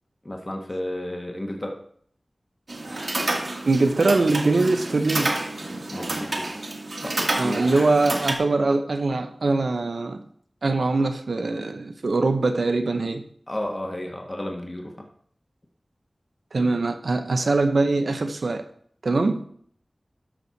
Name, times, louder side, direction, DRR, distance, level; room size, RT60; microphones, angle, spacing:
voice 1, 0.2-1.8 2.9-3.0 5.9-6.5 7.0-7.9 13.5-14.9, left 1 dB, 30° left, 1.5 m, -32 dB
sound 1, 2.7-8.3, right 2 dB, 70° right, 1.6 m, -29 dB
voice 2, 3.7-5.4 7.4-10.2 10.6-13.2 16.5-18.6 19.0-19.5, right 3 dB, 85° right, 0.8 m, -22 dB
12.5 x 6.1 x 4.1 m
wide cardioid pair, 55°, 0 cm